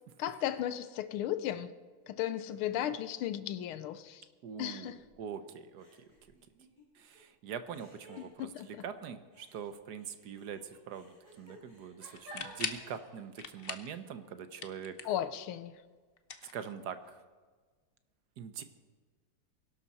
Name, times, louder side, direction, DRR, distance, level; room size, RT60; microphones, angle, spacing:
voice 1, 0.2-1.7 2.1-4.2 4.6-5.0 8.4-8.7 15.0-15.7, left 11 dB, 85° left, 12 dB, 1.6 m, -35 dB
voice 2, 4.4-5.9 6.9-15.1 16.5-17.2 18.4-18.6, right 7 dB, 60° right, 11 dB, 1.2 m, -43 dB
sound 1, 4.9-5.4 5.8-7.2 7.7-8.8 9.3-13.3, equal, 35° right, 5.0 m, -55 dB
sound 2, 12.1-12.9 13.4-14.0 14.3-15.3 16.2-17.1, left 6 dB, 65° left, 0.5 m, -41 dB
21.5 x 12.0 x 4.2 m, 1.4 s
omnidirectional pair, 2.3 m